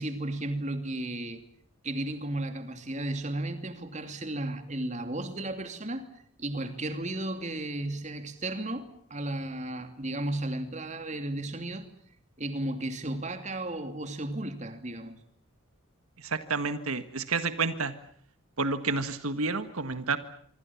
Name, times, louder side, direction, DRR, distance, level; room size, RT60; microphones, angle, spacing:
voice 1, 0.0-1.4 1.8-6.1 6.4-11.9 12.4-15.2, right 1 dB, 30° right, 2.8 m, -34 dB
voice 2, 16.2-17.9 18.6-20.2, right 4 dB, 80° right, 1.7 m, -30 dB
26.0 x 24.5 x 7.2 m
head